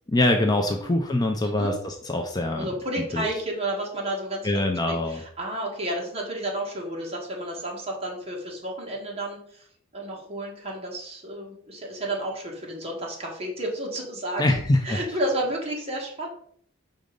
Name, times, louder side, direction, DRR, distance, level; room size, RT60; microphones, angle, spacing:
voice 1, 0.1-2.7 2.9-3.3 4.4-5.2 14.4-15.0, left 1 dB, 20° left, 4 dB, 0.5 m, -24 dB
voice 2, 1.4-1.8 2.5-9.6 9.9-16.3, right 1 dB, 30° right, -2 dB, 1.6 m, -32 dB
5.2 x 3.8 x 5.2 m, 0.62 s
head